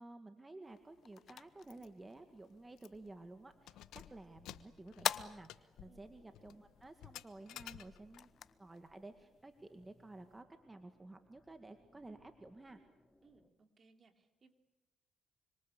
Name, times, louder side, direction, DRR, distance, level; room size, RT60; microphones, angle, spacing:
voice 1, 0.0-8.3 8.6-12.8, right 2 dB, 20° right, 7 dB, 2.1 m, -53 dB
sound 1, 0.6-10.4, left 9 dB, 65° left, 0.9 m, -47 dB
sound 2, 1.3-13.5, left 1 dB, 10° left, 3.2 m, -72 dB
Keys jangling, 1.7-1.9 2.2-2.3 2.8-3.1 3.5-8.3, left 13 dB, 90° left, 1.1 m, -54 dB
voice 2, 13.2-14.5, right 4 dB, 40° right, 6 dB, 3.5 m, -67 dB
26.5 x 25.5 x 8.4 m, 0.90 s
cardioid pair, 90°, 0 cm